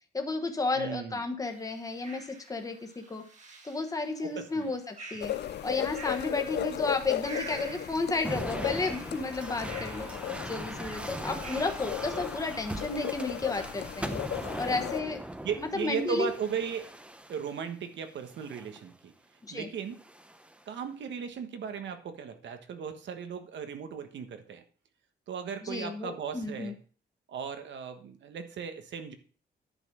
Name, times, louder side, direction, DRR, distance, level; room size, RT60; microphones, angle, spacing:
voice 1, 0.1-3.2 3.6-5.3 5.6-10.1 10.5-14.1 14.6-15.2 15.6-16.3 19.5-19.7 25.6-26.7, left 3 dB, 20° left, 5 dB, 1.2 m, -32 dB
voice 2, 0.7-1.2 4.2-4.7 6.6-6.7 15.4-16.9 17.3-19.1 19.5-20.0 20.7-24.6 25.3-26.8 27.3-29.2, right 6 dB, 90° right, 7 dB, 1.4 m, -36 dB
sound 1, 1.5-11.9, right 3 dB, 40° right, 1.8 m, -48 dB
sound 2, 5.2-15.0, left 12 dB, 65° left, 0.5 m, -36 dB
sound 3, 8.2-17.6 18.3-18.8 19.9-20.6, right 1 dB, 5° right, 0.7 m, -40 dB
10.5 x 5.4 x 6.0 m, 0.42 s
wide cardioid pair, 155°, 18 cm